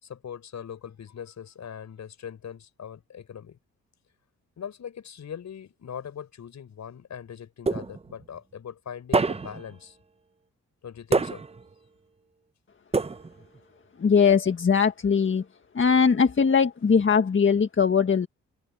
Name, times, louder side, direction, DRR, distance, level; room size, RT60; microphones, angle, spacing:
voice 1, 0.0-3.6 4.6-10.0 10.8-11.4, left 8 dB, 65° left, 6.6 m, -41 dB
sound 1, 7.7-8.2 9.1-9.7 11.1-11.7 12.9-13.6, right 3 dB, 20° right, 0.8 m, -26 dB
voice 2, 14.0-15.4 15.7-18.3, left 6 dB, 40° left, 1.6 m, -20 dB
cardioid pair, 65°, 30 cm